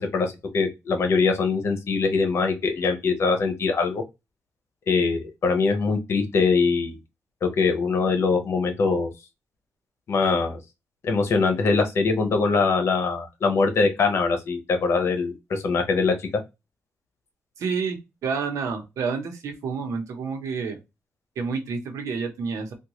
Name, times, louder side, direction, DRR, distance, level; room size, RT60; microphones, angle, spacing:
voice 1, 0.0-4.0 4.9-7.0 7.4-9.1 10.1-10.6 11.0-16.1, left 4 dB, 55° left, 5 dB, 0.9 m, -22 dB
voice 2, 17.6-20.8 21.4-22.7, right 5 dB, 85° right, 4 dB, 1.0 m, -29 dB
3.6 x 2.5 x 3.0 m, 0.23 s
wide cardioid pair, 135°, 5 cm